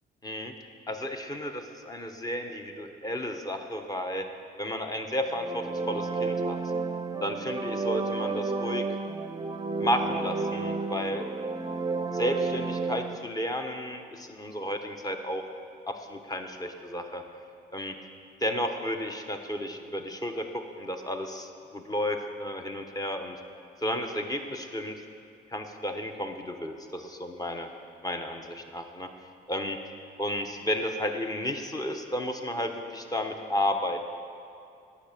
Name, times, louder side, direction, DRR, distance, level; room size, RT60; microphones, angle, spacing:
voice 1, 0.2-0.5 0.9-4.3 4.6-6.6 7.2-8.9 9.8-11.3 12.1-15.4 15.9-17.2 17.7-17.9 18.4-23.4 23.8-25.0 25.5-27.7 28.0-29.1 29.5-29.8 30.2-34.0, left 1 dB, 20° left, 5 dB, 1.0 m, -32 dB
sound 1, 5.2-13.2, right 3 dB, 20° right, 0.6 m, -31 dB
10.0 x 7.0 x 6.6 m, 2.5 s
cardioid pair, 90°, 20 cm